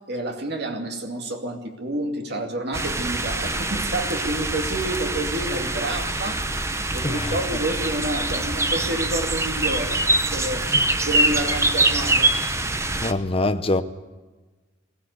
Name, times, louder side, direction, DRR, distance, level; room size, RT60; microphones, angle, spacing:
voice 1, 0.1-6.5 6.9-10.6 11.1-12.3, right 1 dB, 55° right, 2.4 m, -29 dB
sound 1, 2.7-13.1, right 2 dB, 15° right, 0.8 m, -24 dB
voice 2, 7.0-7.4 10.7-10.8 13.0-13.8, left 2 dB, 30° left, 0.8 m, -24 dB
21.5 x 17.0 x 8.2 m
head